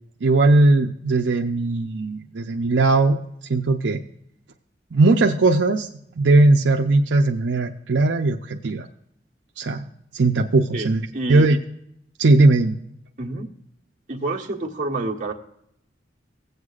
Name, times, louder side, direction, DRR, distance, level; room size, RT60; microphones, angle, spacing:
voice 1, 0.2-3.2 3.5-4.0 4.9-5.9 6.2-8.9 9.6-9.8 10.1-11.6 12.2-12.8, right 2 dB, 75° right, 3 dB, 0.6 m, -18 dB
voice 2, 10.7-11.5 13.2-13.5 14.1-15.3, right 2 dB, 45° right, -1 dB, 1.4 m, -28 dB
17.0 x 8.0 x 2.4 m, 0.74 s
head